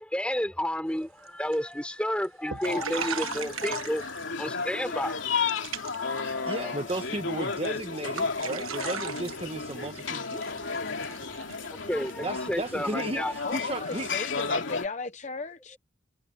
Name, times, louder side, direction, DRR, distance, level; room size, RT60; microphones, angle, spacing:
voice 1, 0.0-4.1 4.4-5.2 5.9-7.0 10.9-13.3 15.7-15.8, equal, 5° left, 4.3 m, -32 dB
sound 1, 1.0-1.3 1.5-2.0 2.2-2.3 2.5-4.6 4.9-5.2 5.5-6.1 6.4-7.1 7.5-7.7 8.0-14.4, right 8 dB, 85° right, 1.3 m, -39 dB
sound 2, 2.6-14.9, left 4 dB, 65° left, 2.8 m, -33 dB
voice 2, 6.5-10.6 12.2-14.1, right 1 dB, 30° right, 1.3 m, -34 dB
voice 3, 13.4-15.8, left 3 dB, 35° left, 0.8 m, -36 dB
head